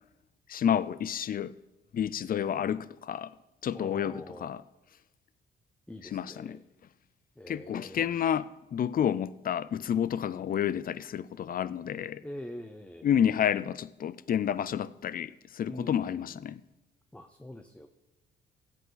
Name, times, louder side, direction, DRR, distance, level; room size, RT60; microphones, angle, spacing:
voice 1, 0.5-1.5 1.9-3.3 3.6-4.6 6.1-6.6 7.5-12.2 13.0-16.6, left 9 dB, 45° left, 0.5 m, -30 dB
voice 2, 3.7-4.5 5.9-6.6 7.4-8.1 12.2-13.1 15.7-16.4 17.1-17.9, left 1 dB, 5° left, 0.7 m, -44 dB
16.0 x 8.2 x 3.9 m
cardioid pair, 90°, 20 cm